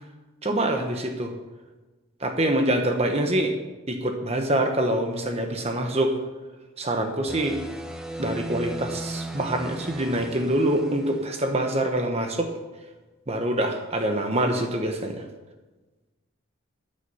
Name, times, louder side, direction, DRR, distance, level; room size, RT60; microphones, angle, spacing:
voice 1, 0.4-1.3 2.2-3.6 3.9-6.1 6.8-7.6 8.2-12.5 13.3-15.2, right 1 dB, 30° right, 4 dB, 1.2 m, -25 dB
sound 1, 7.3-11.7, right 1 dB, 5° right, 1.1 m, -36 dB
14.5 x 10.0 x 5.6 m, 1.2 s
head